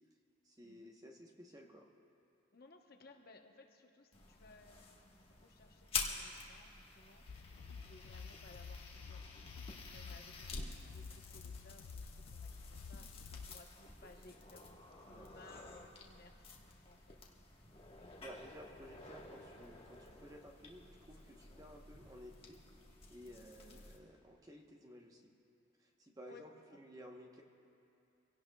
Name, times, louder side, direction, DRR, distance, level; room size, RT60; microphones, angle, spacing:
voice 1, 0.4-1.9 10.5-10.7 15.1-15.3 18.2-22.6 23.1-25.3 25.8-27.4, equal, 15° right, 1 dB, 1.0 m, -55 dB
voice 2, 2.5-4.9 5.3-7.2 7.7-9.2 9.9-13.1 13.4-17.2 17.5-17.6 17.9-18.4 23.5-23.8 26.3-26.4 26.7-26.8, left 2 dB, 45° left, 3 dB, 0.9 m, -61 dB
sound 1, 4.1-24.0, left 4 dB, 25° left, 1.4 m, -49 dB
sound 2, 7.3-13.6, left 5 dB, 70° left, 0.3 m, -51 dB
25.5 x 17.0 x 2.3 m, 2.7 s
head